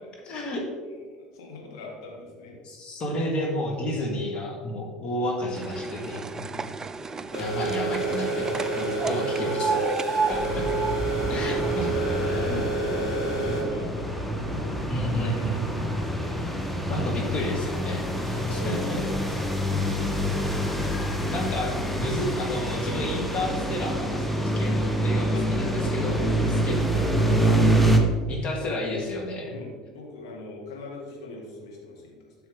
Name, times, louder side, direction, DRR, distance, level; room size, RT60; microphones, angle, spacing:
voice 1, 0.2-0.7 2.6-6.6 7.4-9.8 10.1-10.6 11.3-11.9 14.9-15.6 16.9-19.0 21.3-26.2 26.6-26.8 28.3-29.5, left 1 dB, 45° left, 1 dB, 1.6 m, -31 dB
voice 2, 1.1-2.6 9.4-9.5 10.1-10.2 10.4-11.6 11.9-16.6 18.4-19.3 19.5-20.5 25.3-25.5 26.0-27.8 29.5-32.3, left 2 dB, 70° left, -2 dB, 1.8 m, -41 dB
sound 1, 5.5-13.8 14.2-15.0 15.7-15.9 16.1-16.2 16.5-16.6 17.5-17.6 18.2-18.3 18.9-19.0 19.5-19.6, right 4 dB, 20° right, 0.3 m, -33 dB
sound 2, 7.3-13.6, right 3 dB, 85° left, 2.3 m, -29 dB
sound 3, 10.3-28.0, right 1 dB, 5° left, 1.0 m, -26 dB
7.6 x 5.7 x 3.6 m, 1.5 s
figure-of-eight pair, 65°, 3 cm